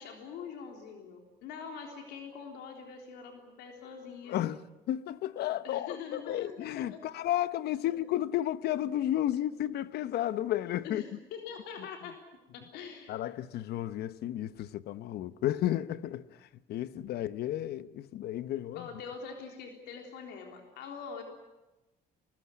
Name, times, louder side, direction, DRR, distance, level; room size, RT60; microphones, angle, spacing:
voice 1, 0.0-4.4 5.6-7.0 10.8-12.2 12.5-13.2 18.7-21.2, left 6 dB, 85° left, 3.7 m, -44 dB
voice 2, 4.3-4.6 4.9-11.0 13.1-16.3 16.7-18.9, left 12 dB, 70° left, 1.0 m, -32 dB
24.0 x 20.0 x 9.8 m
cardioid pair, 110°, 17 cm